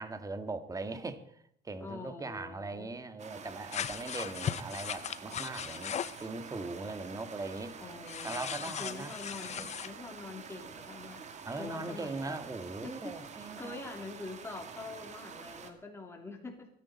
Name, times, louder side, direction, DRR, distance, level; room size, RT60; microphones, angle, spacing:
voice 1, 0.0-7.8 8.2-9.7 11.5-13.8, right 3 dB, 20° right, 9 dB, 1.6 m, -40 dB
voice 2, 1.8-2.9 7.8-11.2 11.6-12.4 12.8-16.7, left 3 dB, 15° left, 1 dB, 2.9 m, -45 dB
sound 1, 3.2-15.7, right 6 dB, 45° right, 2.0 m, -48 dB
sound 2, 3.7-6.2 8.1-9.9, left 9 dB, 40° left, 0.7 m, -38 dB
24.5 x 10.0 x 4.2 m, 0.63 s
cardioid pair, 110°, 17 cm